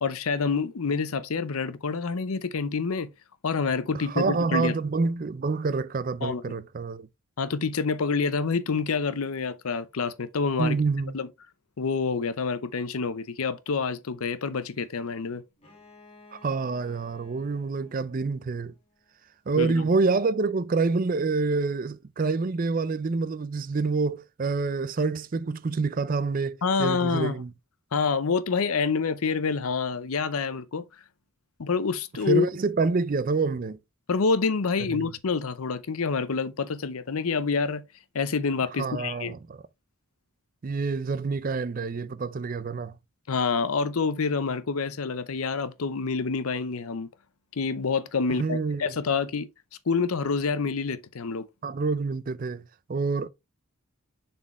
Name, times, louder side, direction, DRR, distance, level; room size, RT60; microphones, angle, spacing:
voice 1, 0.0-3.1 3.4-4.7 6.2-6.6 7.4-10.8 11.1-11.3 11.8-15.4 19.6-19.9 26.6-27.4 27.9-30.8 31.6-32.4 34.1-37.8 38.1-39.3 43.3-47.1 47.6-49.5 49.9-51.5, left 5 dB, 80° left, 0.6 m, -27 dB
voice 2, 3.9-7.1 10.6-11.2 16.3-18.7 19.5-27.5 32.3-33.8 34.9-35.1 38.8-39.6 40.6-42.9 48.4-48.9 51.6-52.6 52.9-53.3, right 4 dB, 40° right, 0.4 m, -27 dB
Bowed string instrument, 15.6-19.3, left 3 dB, 25° left, 1.7 m, -55 dB
7.0 x 4.4 x 3.0 m
head